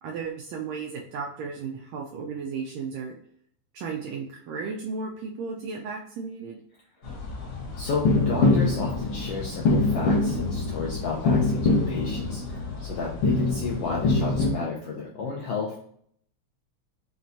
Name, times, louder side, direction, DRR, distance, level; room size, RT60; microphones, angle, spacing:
voice 1, 0.0-3.2 3.7-6.6, right 5 dB, 80° right, -1 dB, 1.6 m, -34 dB
sound 1, 7.0-14.5, left 3 dB, 60° left, 1.5 m, -25 dB
voice 2, 7.8-12.4 12.8-15.8, left 4 dB, 80° left, -3 dB, 1.4 m, -32 dB
6.0 x 2.3 x 2.6 m, 0.63 s
omnidirectional pair, 3.5 m